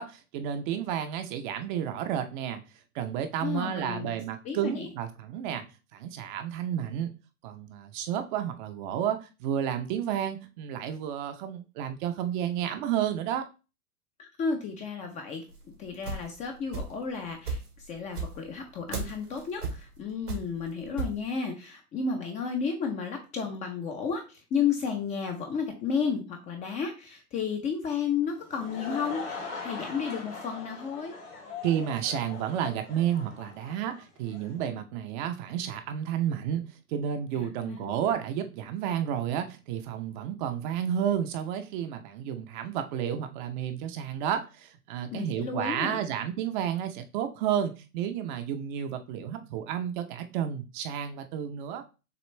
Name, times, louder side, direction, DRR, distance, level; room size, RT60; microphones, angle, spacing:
voice 1, 0.0-2.6 2.9-5.6 5.9-7.1 7.4-13.5 31.6-36.6 36.9-51.8, right 9 dB, 35° right, 0.6 m, -31 dB
voice 2, 3.4-4.1 4.4-4.9 14.2-15.4 15.8-17.6 17.9-31.1 37.4-38.0 45.1-46.0, left 6 dB, 15° left, 0.5 m, -32 dB
sound 1, 15.5-17.1 17.4-21.2, right 4 dB, 90° right, 2.0 m, -35 dB
Laughter / Crowd, 28.3-34.6, left 4 dB, 85° left, 2.1 m, -41 dB
6.7 x 2.5 x 3.1 m
hypercardioid pair, 110°, 45 cm